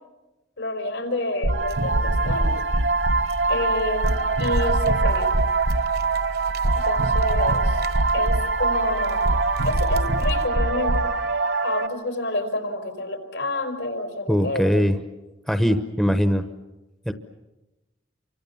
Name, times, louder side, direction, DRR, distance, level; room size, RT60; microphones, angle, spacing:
voice 1, 0.6-2.6 3.5-5.3 6.7-7.8 8.1-9.2 9.6-11.0 11.6-14.8, left 1 dB, 80° left, 5 dB, 4.7 m, -29 dB
sound 1, 1.4-11.9, right 3 dB, 70° right, 1.1 m, -22 dB
sound 2, 1.7-10.5, right 1 dB, 50° right, 1.2 m, -36 dB
voice 2, 14.3-15.0 15.5-16.5 17.1-17.2, equal, ahead, 8 dB, 0.9 m, -21 dB
29.0 x 24.5 x 7.2 m, 1.1 s
head